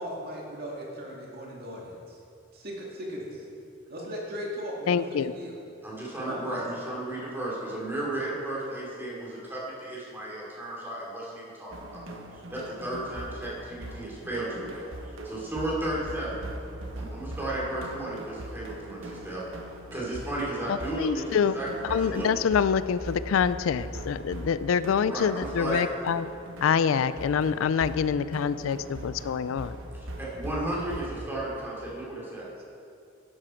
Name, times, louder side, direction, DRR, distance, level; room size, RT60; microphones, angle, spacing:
voice 1, 0.0-2.2 2.5-3.5 3.9-5.5 6.2-6.7, equal, 50° right, -3 dB, 2.3 m, -38 dB
voice 2, 4.9-5.3 20.7-21.6 21.8-26.3 26.6-29.8, left 7 dB, 80° left, 15 dB, 0.4 m, -26 dB
voice 3, 5.8-16.5 17.0-19.4 19.9-22.3 25.0-25.8 30.2-32.5, right 1 dB, 10° right, -6 dB, 3.0 m, -34 dB
sound 1, 11.7-31.2, right 1 dB, 75° right, 1.1 m, -41 dB
11.5 x 10.5 x 4.5 m, 2.5 s
head